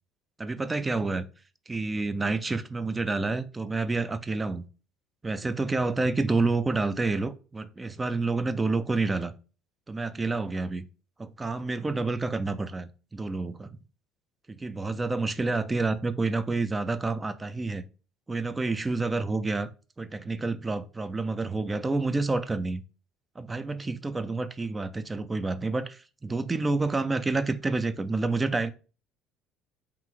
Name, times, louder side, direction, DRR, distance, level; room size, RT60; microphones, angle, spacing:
voice 1, 0.4-1.3 1.7-4.7 5.2-9.3 9.9-10.9 11.2-13.7 14.5-17.8 18.3-19.7 20.0-22.8 23.4-28.7, right 3 dB, 20° right, 0.3 m, -29 dB
2.9 x 2.5 x 3.5 m
hypercardioid pair, 60°, 0 cm